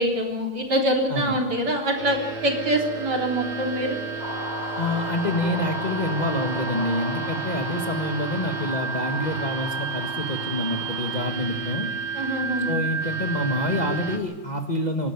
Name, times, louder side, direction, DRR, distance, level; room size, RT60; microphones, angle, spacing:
voice 1, 0.0-4.0 12.1-12.8, equal, 55° right, 2 dB, 4.1 m, -25 dB
sound 1, 2.0-14.2, right 5 dB, 90° right, 4.3 m, -31 dB
sound 2, 4.2-11.3, left 3 dB, 85° left, 4.8 m, -36 dB
voice 2, 4.8-11.9 12.6-15.1, left 1 dB, 20° left, 4 dB, 1.6 m, -27 dB
27.5 x 12.0 x 9.6 m, 1.2 s
omnidirectional pair, 2.2 m